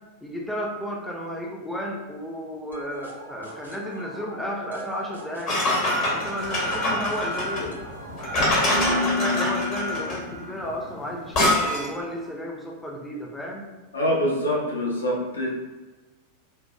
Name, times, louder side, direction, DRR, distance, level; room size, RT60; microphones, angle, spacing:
voice 1, 0.2-5.6 6.0-7.8 8.5-13.7, equal, 5° left, -1 dB, 0.5 m, -33 dB
sound 1, 2.7-10.5, left 3 dB, 85° right, 0.6 m, -35 dB
sound 2, 5.5-12.0, left 1 dB, 45° left, 0.9 m, -25 dB
voice 2, 13.9-15.6, equal, 80° left, -3 dB, 0.8 m, -25 dB
4.4 x 2.0 x 2.3 m, 1.2 s
figure-of-eight pair, 90°, 0 cm